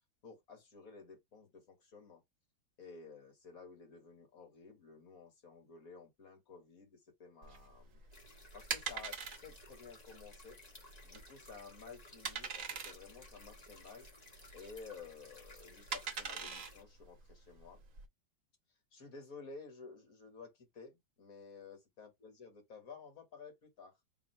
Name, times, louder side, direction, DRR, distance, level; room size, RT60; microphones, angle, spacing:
voice 1, 0.2-2.2 2.8-8.0 8.5-10.6 11.0-14.1 14.5-17.8 18.9-24.0, left 5 dB, 50° left, 2.0 m, -53 dB
sound 1, 7.4-18.1, right 6 dB, 50° right, 1.2 m, -44 dB
sound 2, 8.1-16.8, left 2 dB, 25° left, 1.2 m, -58 dB
3.6 x 2.8 x 4.4 m
omnidirectional pair, 2.0 m